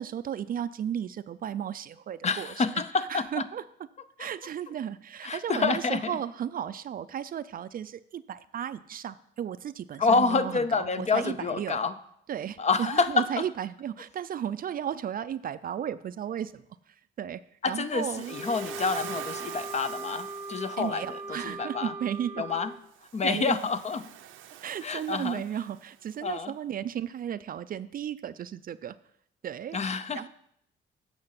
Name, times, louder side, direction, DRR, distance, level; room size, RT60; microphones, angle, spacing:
voice 1, 0.0-2.6 3.1-3.6 4.2-11.8 12.3-17.4 17.7-18.4 19.0-19.2 20.8-22.4 23.2-23.6 24.6-29.0 29.4-29.8 30.1-30.3, right 9 dB, 45° right, 15 dB, 0.4 m, -34 dB
voice 2, 2.2-3.5 5.2-6.1 10.0-11.9 12.6-13.3 17.6-21.9 22.4-22.7 23.1-24.0 24.8-25.4 26.2-26.5 29.7-30.3, left 4 dB, 35° left, 12 dB, 0.6 m, -28 dB
Waves surf, 17.9-21.1 22.9-26.0, right 11 dB, 85° right, 0.6 m, -45 dB
Wind instrument woodwind instrument, 18.3-22.7, right 2 dB, 75° left, 3.8 m, -39 dB
8.8 x 6.1 x 5.8 m, 0.72 s
cardioid pair, 90°, 20 cm